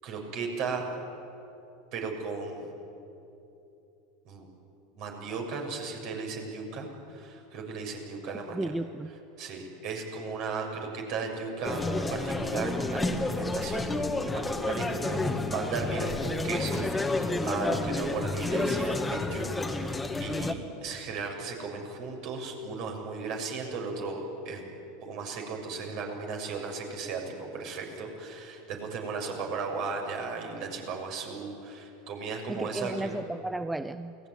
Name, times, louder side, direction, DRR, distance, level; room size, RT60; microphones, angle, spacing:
voice 1, 0.0-0.9 1.9-2.7 4.2-4.5 4.9-8.7 9.4-24.2 24.4-24.6 25.0-33.1, right 4 dB, 55° right, 2 dB, 6.9 m, -36 dB
voice 2, 8.5-9.1 32.5-34.2, right 2 dB, 10° right, 12 dB, 0.7 m, -34 dB
sound 1, 11.6-20.5, left 2 dB, 10° left, 2.1 m, -30 dB
29.0 x 19.5 x 9.8 m, 2.9 s
hypercardioid pair, 85°, 0 cm